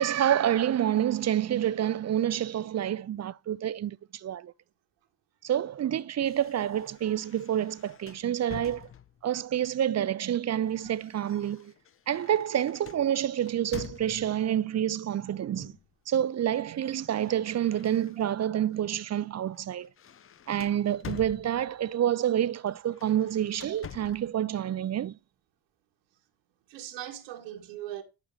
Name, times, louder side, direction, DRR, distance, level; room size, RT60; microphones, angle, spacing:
voice 1, 0.0-4.5 5.4-8.9 9.2-11.7 12.1-15.7 16.1-19.9 20.5-25.2, right 10 dB, 35° right, 0.6 m, -28 dB
sound 1, 6.3-9.4 10.3-14.5 15.5-15.9 16.2-18.5 19.0-19.2 19.5-21.9 22.8-24.4, left 9 dB, 25° left, 0.6 m, -47 dB
voice 2, 18.2-18.6 26.7-28.0, right 12 dB, 70° right, 1.6 m, -40 dB
11.5 x 4.7 x 7.5 m
figure-of-eight pair, 40°, 48 cm